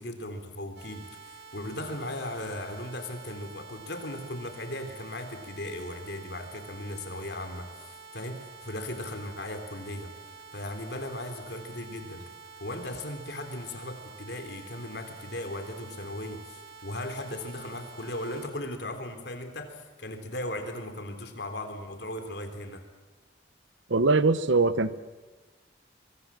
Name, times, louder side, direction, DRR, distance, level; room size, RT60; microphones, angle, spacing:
voice 1, 0.0-10.1 10.5-12.3 12.6-22.8, left 1 dB, 60° left, 6 dB, 3.7 m, -37 dB
sound 1, 0.8-18.5, right 5 dB, 65° right, 5.1 m, -48 dB
voice 2, 23.9-25.0, right 3 dB, 80° right, 14 dB, 1.1 m, -22 dB
24.5 x 24.5 x 7.7 m, 1.3 s
head